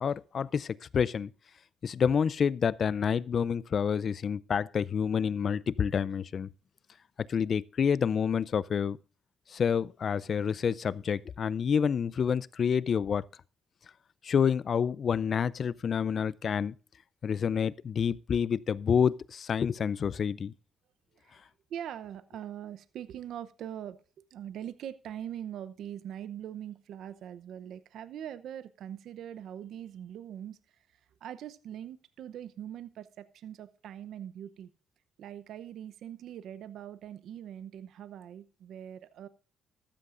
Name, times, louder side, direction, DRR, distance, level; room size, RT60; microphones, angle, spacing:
voice 1, 0.0-1.3 1.8-6.5 7.3-9.0 9.5-13.3 14.2-16.7 17.2-20.5, left 7 dB, 50° left, 0.5 m, -28 dB
voice 2, 21.7-24.0 24.3-30.8 31.2-34.7 35.2-39.3, right 10 dB, 75° right, 0.7 m, -42 dB
13.5 x 13.0 x 2.5 m
cardioid pair, 90°, 0 cm